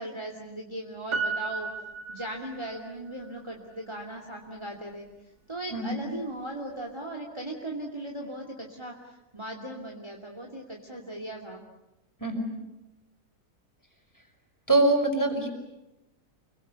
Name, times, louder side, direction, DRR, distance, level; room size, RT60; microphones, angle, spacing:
voice 1, 0.0-1.7 2.1-5.1 5.5-11.6, right 1 dB, 15° right, 1 dB, 2.7 m, -38 dB
Piano, 1.1-2.9 3.2-3.3, right 4 dB, 80° right, 2.3 m, -33 dB
voice 2, 5.7-6.0 12.2-12.5 14.7-15.5, right 2 dB, 10° left, 3 dB, 5.4 m, -24 dB
29.5 x 23.5 x 8.2 m, 0.96 s
omnidirectional pair, 1.7 m